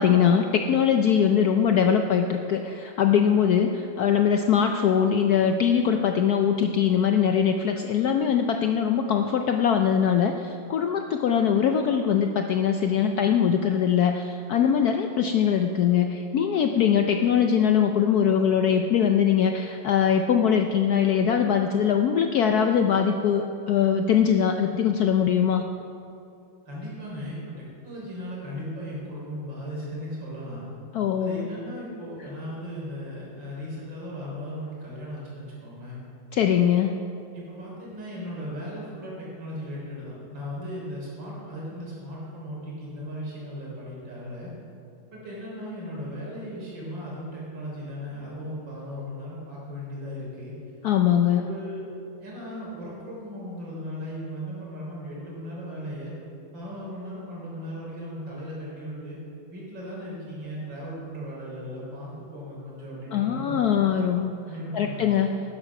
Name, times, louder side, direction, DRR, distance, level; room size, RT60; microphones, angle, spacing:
voice 1, 0.0-25.6 30.9-31.5 36.3-36.9 50.8-51.4 63.1-64.3 64.7-65.3, left 8 dB, 70° left, 5 dB, 0.9 m, -22 dB
voice 2, 26.7-30.7 31.2-36.0 37.3-44.5 45.1-50.5 51.4-51.8 52.2-56.1 56.5-59.2 59.5-63.9 64.4-65.2, equal, 70° right, -5 dB, 4.4 m, -37 dB
12.0 x 10.0 x 5.9 m, 2.7 s
omnidirectional pair, 2.1 m